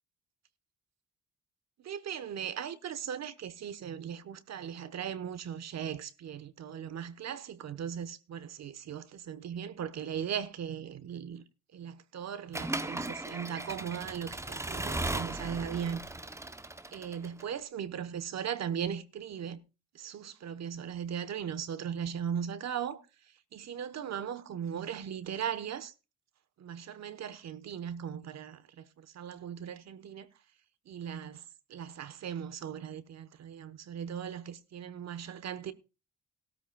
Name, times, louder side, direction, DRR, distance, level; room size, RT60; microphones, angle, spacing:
voice 1, 1.8-11.4 11.7-16.0 16.9-19.6 19.9-23.0 23.5-25.9 26.6-28.6 29.0-30.3 30.9-31.4 31.7-35.7, right 8 dB, 60° right, 1.1 m, -38 dB
Accelerating revving vroom / Mechanisms, 12.5-17.4, right 2 dB, 10° right, 0.8 m, -37 dB
16.5 x 13.0 x 2.3 m
cardioid pair, 90°, 30 cm